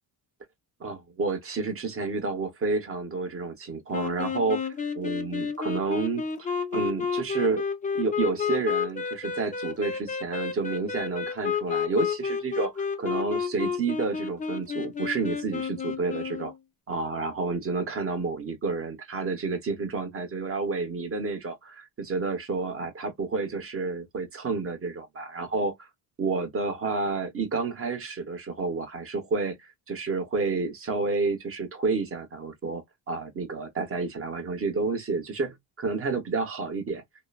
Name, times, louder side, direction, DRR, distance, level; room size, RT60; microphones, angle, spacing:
voice 1, 0.8-4.6 4.9-6.5 6.7-7.6 7.9-16.5 16.9-25.9 26.2-37.0, right 4 dB, 30° right, 1.0 m, -30 dB
sound 1, 3.9-16.5, left 6 dB, 20° left, 0.3 m, -31 dB
2.9 x 2.0 x 2.3 m
cardioid pair, 105°, 45 cm